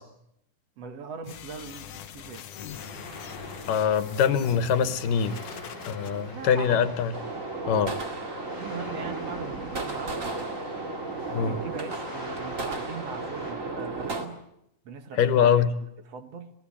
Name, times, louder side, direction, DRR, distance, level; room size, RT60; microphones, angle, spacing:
voice 1, 0.8-2.5 6.3-7.0 8.6-10.6 11.5-14.4 14.9-16.5, right 5 dB, 60° right, 8 dB, 2.3 m, -40 dB
sound 1, 1.2-6.1, left 9 dB, 60° left, 1.7 m, -43 dB
sound 2, 2.7-13.5, left 2 dB, 35° left, 7.3 m, -42 dB
voice 2, 3.7-5.4 5.9-7.2 7.7-7.9 11.3-11.6 15.2-15.7, left 7 dB, 90° left, 11 dB, 2.8 m, -23 dB
sound 3, 7.1-14.2, right 3 dB, 30° right, 2.0 m, -34 dB
26.0 x 17.5 x 8.6 m, 0.79 s
omnidirectional pair, 3.7 m